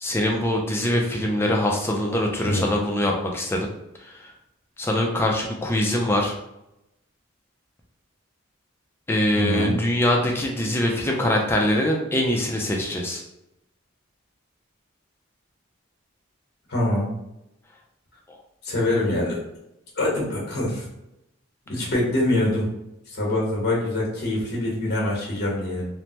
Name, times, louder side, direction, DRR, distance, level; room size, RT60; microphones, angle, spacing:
voice 1, 0.0-3.7 4.0-4.3 4.8-6.3 9.1-13.2 18.3-18.4, left 1 dB, 10° left, 0 dB, 0.3 m, -23 dB
voice 2, 9.3-9.8 16.7-17.1 18.6-19.4 20.0-20.9 21.7-22.7 23.1-25.8, left 1 dB, 50° left, -3 dB, 1.0 m, -24 dB
3.2 x 2.0 x 2.8 m, 0.88 s
head